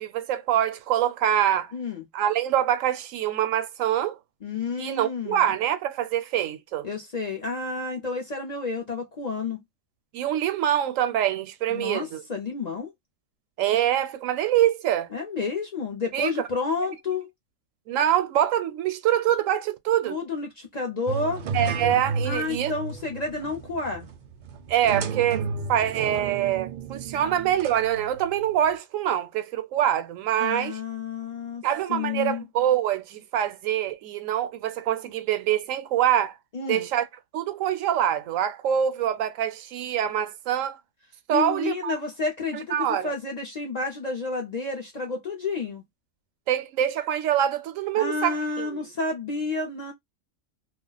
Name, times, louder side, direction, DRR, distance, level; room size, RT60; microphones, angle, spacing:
voice 1, 0.0-1.7 2.1-4.2 4.8-6.9 10.1-12.2 13.6-15.1 16.1-16.3 17.9-20.2 21.5-22.7 24.7-25.4 25.7-30.8 31.6-36.3 36.7-37.1 37.3-40.8 41.3-41.9 42.5-43.1 46.5-48.8, right 11 dB, 85° right, 0.9 m, -25 dB
voice 2, 1.7-2.0 4.4-5.5 6.8-9.6 11.7-12.9 15.1-17.3 20.0-21.4 22.2-24.1 30.4-31.6 31.9-32.4 36.5-36.9 41.3-45.8 48.0-49.9, left 4 dB, 45° left, 0.6 m, -30 dB
sound 1, 21.1-28.6, right 4 dB, 65° right, 0.4 m, -33 dB
2.3 x 2.0 x 3.8 m
omnidirectional pair, 1.3 m